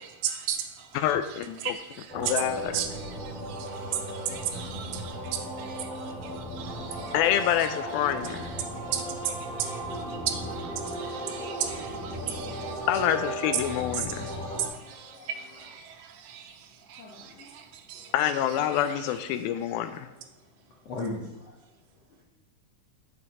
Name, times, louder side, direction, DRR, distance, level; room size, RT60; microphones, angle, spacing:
voice 1, 0.0-7.2 7.6-7.7 8.2-12.9 13.6-18.1 18.7-19.0, right 9 dB, 85° right, 2.6 m, -36 dB
voice 2, 1.0-1.7 2.1-2.8 7.1-8.5 12.9-14.3 18.1-20.1, left 10 dB, 80° left, 2.3 m, -27 dB
sound 1, 2.1-14.7, equal, ahead, 1.4 m, -36 dB
voice 3, 3.6-5.0 6.8-7.0 10.0-10.2 11.3-11.6 14.1-15.3 17.0-17.5 17.9-18.1 20.8-21.5, left 2 dB, 65° left, 1.6 m, -42 dB
8.6 x 7.1 x 4.2 m
omnidirectional pair, 4.4 m